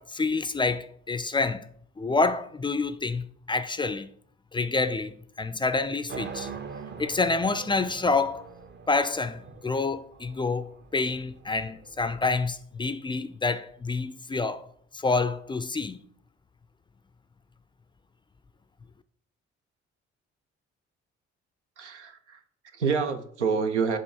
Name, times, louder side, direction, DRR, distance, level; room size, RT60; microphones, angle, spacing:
voice 1, 0.0-1.7 2.0-4.1 4.5-6.5 7.0-8.4 8.9-14.7 14.9-16.0, left 3 dB, 15° left, 0.3 m, -28 dB
sound 1, 6.1-12.2, right 5 dB, 30° right, 0.6 m, -42 dB
voice 2, 21.8-24.0, right 5 dB, 90° right, 0.5 m, -28 dB
7.7 x 2.8 x 4.6 m
figure-of-eight pair, 45°, 34 cm